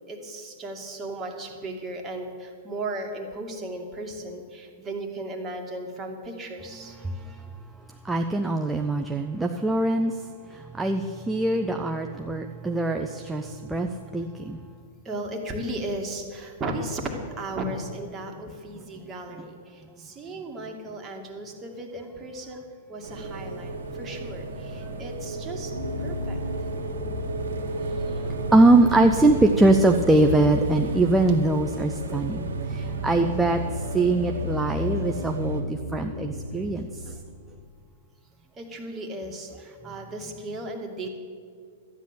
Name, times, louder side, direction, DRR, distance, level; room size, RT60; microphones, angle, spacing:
voice 1, 0.1-7.0 15.0-22.6 22.9-25.7 26.0-26.4 38.6-41.1, right 1 dB, 25° right, 2 dB, 2.2 m, -35 dB
voice 2, 8.1-10.1 10.8-13.9 14.1-14.6 28.1-28.2 28.5-32.5 32.7-33.6 33.9-35.6 35.9-36.9, right 2 dB, 10° right, 3 dB, 0.7 m, -22 dB
sound 1, 23.0-35.6, right 3 dB, 70° right, 2.0 m, -34 dB
sound 2, 25.7-37.6, left 1 dB, 90° left, 1.4 m, -34 dB
12.5 x 9.2 x 6.9 m, 2.1 s
hypercardioid pair, 105°, 0 cm